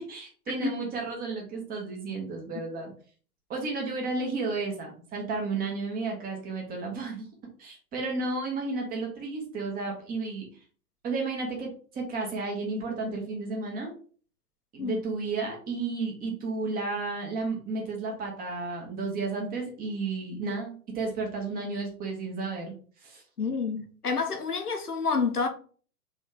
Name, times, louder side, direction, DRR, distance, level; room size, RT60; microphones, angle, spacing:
voice 1, 0.0-2.9 3.5-7.2 7.6-10.4 11.0-13.9 14.7-22.7 23.0-23.2, right 3 dB, 20° right, 1.4 m, -32 dB
voice 2, 23.4-25.5, left 5 dB, 85° left, 0.9 m, -28 dB
4.2 x 3.1 x 3.8 m
figure-of-eight pair, 105°, 44 cm